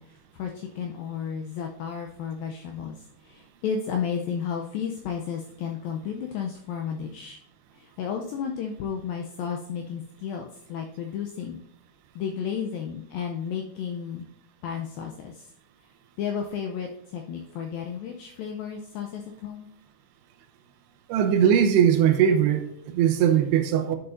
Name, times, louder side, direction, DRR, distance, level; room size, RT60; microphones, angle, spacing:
voice 1, 0.0-7.4 7.7-11.6 12.2-14.3 14.6-15.5 16.2-19.7, left 7 dB, 85° left, 2.1 m, -33 dB
voice 2, 21.1-24.0, right 9 dB, 85° right, 2.8 m, -20 dB
11.0 x 6.8 x 2.6 m
omnidirectional pair, 4.8 m